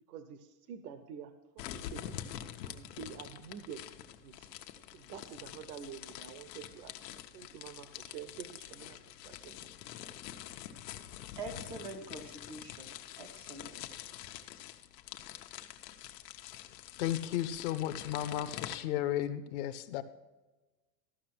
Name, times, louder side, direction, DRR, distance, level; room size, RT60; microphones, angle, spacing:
voice 1, 0.1-2.1 2.6-3.8 4.2-4.5 4.9-6.9 7.3-9.0 9.2-9.6, right 8 dB, 65° right, 10 dB, 1.0 m, -47 dB
sound 1, 1.6-18.8, left 12 dB, 90° left, 1.0 m, -46 dB
voice 2, 11.4-13.8, right 3 dB, 20° right, 6 dB, 0.3 m, -45 dB
voice 3, 17.0-20.0, left 12 dB, 45° left, 11 dB, 0.7 m, -34 dB
13.5 x 6.1 x 6.0 m, 1.2 s
supercardioid pair, 175°, 48 cm